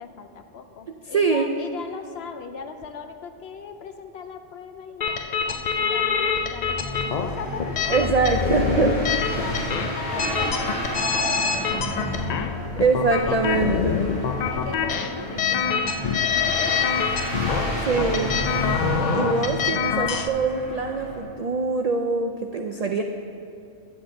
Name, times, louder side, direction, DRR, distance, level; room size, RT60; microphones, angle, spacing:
voice 1, 0.0-8.3 9.1-12.3 13.2-13.6 14.5-17.2 19.0-19.5, left 6 dB, 65° left, 7 dB, 0.8 m, -39 dB
voice 2, 1.1-1.5 7.9-9.0 12.8-14.0 17.8-18.4 19.1-23.0, right 4 dB, 80° right, 4 dB, 0.3 m, -23 dB
sound 1, 5.0-20.3, left 6 dB, 80° left, 0.3 m, -26 dB
sound 2, 6.1-21.2, equal, 15° left, 2.8 m, -31 dB
10.0 x 9.5 x 3.8 m, 2.6 s
omnidirectional pair, 1.3 m